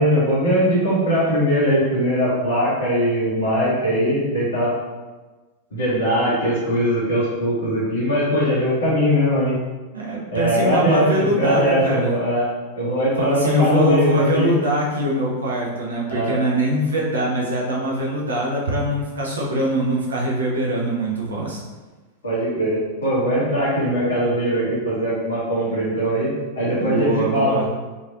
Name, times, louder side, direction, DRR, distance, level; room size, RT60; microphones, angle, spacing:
voice 1, 0.0-4.7 5.7-9.6 10.3-12.4 12.7-14.5 16.1-16.3 22.2-26.3 26.5-27.6, equal, 65° left, -9 dB, 1.4 m, -20 dB
voice 2, 9.9-12.2 13.2-21.6 26.8-27.7, right 1 dB, 70° right, -3 dB, 0.7 m, -23 dB
4.9 x 3.2 x 2.6 m, 1.3 s
figure-of-eight pair, 90°, 0 cm